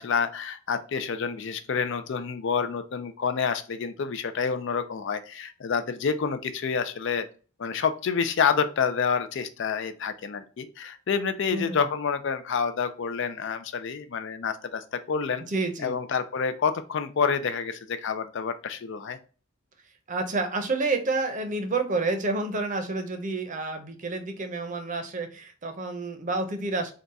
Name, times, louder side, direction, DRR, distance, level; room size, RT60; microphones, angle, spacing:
voice 1, 0.0-7.2 7.6-15.4 15.8-19.2, left 6 dB, 60° left, 10 dB, 0.4 m, -28 dB
voice 2, 11.5-11.8 15.5-16.0 20.1-26.9, right 3 dB, 35° right, 6 dB, 0.6 m, -29 dB
3.8 x 2.3 x 4.0 m, 0.37 s
head